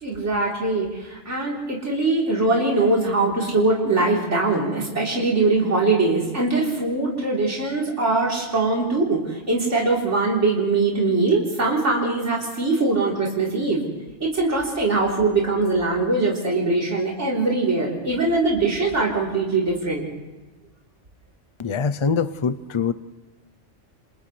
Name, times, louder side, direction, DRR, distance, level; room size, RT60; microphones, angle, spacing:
voice 1, 0.0-13.8 14.2-20.0, right 3 dB, 75° right, -4 dB, 4.2 m, -22 dB
voice 2, 21.6-22.9, left 5 dB, 35° left, 14 dB, 0.6 m, -23 dB
30.0 x 28.5 x 3.3 m, 1.2 s
omnidirectional pair, 1.2 m